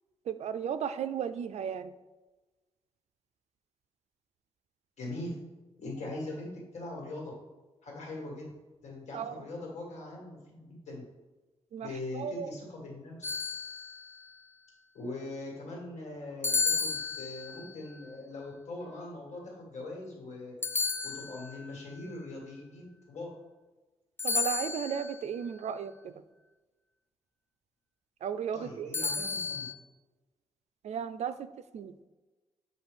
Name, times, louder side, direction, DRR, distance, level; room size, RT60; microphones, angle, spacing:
voice 1, 0.3-1.9 9.1-9.5 11.7-12.5 24.2-26.1 28.2-29.0 30.8-31.9, right 8 dB, 75° right, 11 dB, 0.4 m, -35 dB
voice 2, 5.0-5.4 5.8-7.3 7.8-8.5 8.8-11.0 11.8-13.2 14.9-20.5 21.0-23.3 28.5-29.7, left 2 dB, 85° left, -2 dB, 1.8 m, -41 dB
sound 1, 13.2-14.1 16.4-17.7 20.6-21.7 24.2-25.2 28.9-29.7, left 5 dB, 20° left, 0.4 m, -32 dB
7.7 x 2.6 x 5.1 m, 1.2 s
wide cardioid pair, 125°, 11 cm